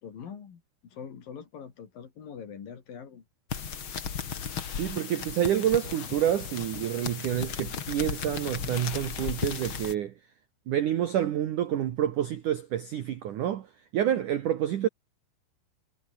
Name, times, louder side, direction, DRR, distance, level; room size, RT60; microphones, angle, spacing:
voice 1, 0.0-3.2, left 7 dB, 50° left, 4.2 m, -43 dB
sound 1, 3.5-9.9, left 7 dB, 65° left, 1.2 m, -35 dB
voice 2, 4.7-10.1 10.7-14.9, right 11 dB, 85° right, 1.7 m, -28 dB
omnidirectional pair, 5.7 m